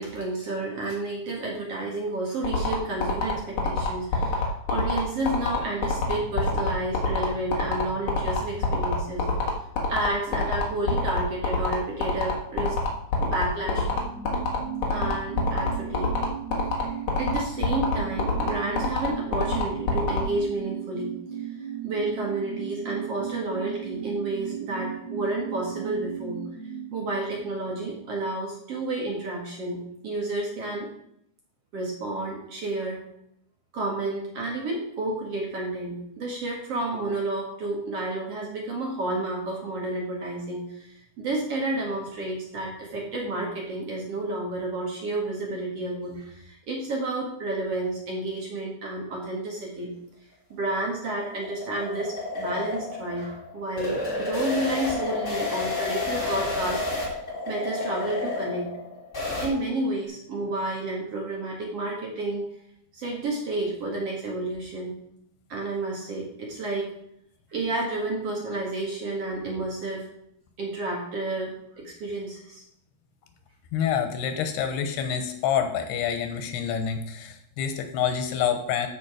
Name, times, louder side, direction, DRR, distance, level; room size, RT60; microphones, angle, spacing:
voice 1, 0.0-4.4 4.7-9.3 9.9-12.8 13.2-13.9 14.9-16.2 16.7-21.2 21.8-26.4 26.9-30.9 31.7-33.0 33.7-49.9 50.5-57.2 57.5-58.7 59.4-62.5 62.9-65.0 65.5-66.9 67.5-70.1 70.6-72.6, right 2 dB, 45° right, -2 dB, 2.4 m, -31 dB
sound 1, 2.4-20.2, left 5 dB, 55° left, 2.6 m, -25 dB
sound 2, 13.5-28.6 28.9-29.0, right 9 dB, 75° right, 3.0 m, -37 dB
sound 3, 50.5-59.5, left 2 dB, 15° left, 4.1 m, -31 dB
voice 2, 73.7-78.9, left 8 dB, 90° left, 7 dB, 3.1 m, -27 dB
13.0 x 5.3 x 5.0 m, 0.72 s
omnidirectional pair, 4.6 m